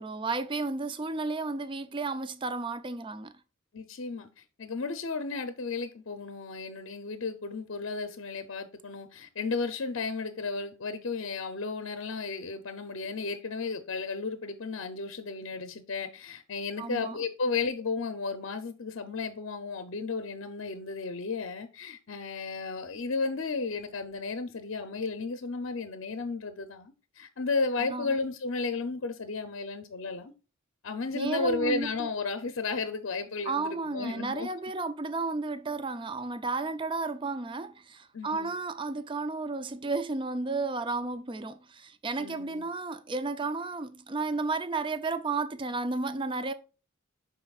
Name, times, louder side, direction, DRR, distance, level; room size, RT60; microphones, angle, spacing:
voice 1, 0.0-3.3 16.8-17.2 27.8-28.2 31.1-32.1 33.5-46.5, right 3 dB, 25° right, 0.5 m, -33 dB
voice 2, 3.7-30.3 30.8-34.5 38.1-38.5 42.2-42.7, left 4 dB, 60° left, 0.6 m, -34 dB
11.0 x 4.2 x 2.4 m
head